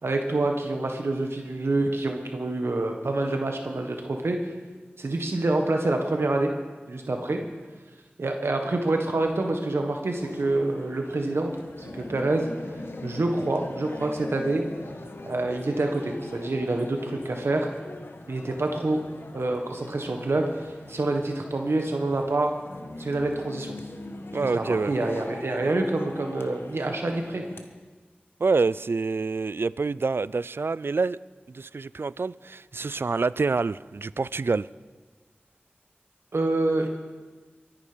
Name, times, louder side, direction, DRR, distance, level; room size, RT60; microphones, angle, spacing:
voice 1, 0.0-4.5 5.0-6.5 6.9-7.4 8.2-11.5 11.8-12.5 13.0-14.6 15.2-17.7 18.3-19.0 19.3-22.5 23.0-23.7 24.4-27.4 36.3-36.9, right 2 dB, 85° right, 3 dB, 1.4 m, -27 dB
sound 1, 10.2-27.6, left 2 dB, 70° left, 1.3 m, -41 dB
voice 2, 24.3-24.9 28.4-31.2 31.5-34.7, right 4 dB, 65° right, 19 dB, 0.4 m, -27 dB
23.0 x 10.5 x 5.1 m, 1.4 s
wide cardioid pair, 55°, 4 cm